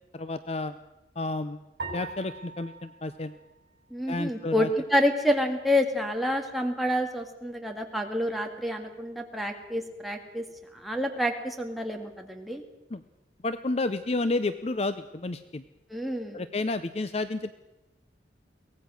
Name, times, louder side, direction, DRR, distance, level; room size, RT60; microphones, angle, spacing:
voice 1, 0.1-0.7 1.2-1.6 1.9-3.3 4.1-4.7 12.9-13.0 13.4-15.6 16.3-17.5, left 2 dB, 35° left, 12 dB, 0.6 m, -30 dB
sound 1, 1.8-4.3, right 3 dB, 65° right, 5.9 m, -42 dB
voice 2, 3.9-10.4 10.7-12.6 15.9-16.4, left 1 dB, ahead, 2 dB, 2.0 m, -28 dB
23.0 x 17.5 x 6.3 m, 1.0 s
head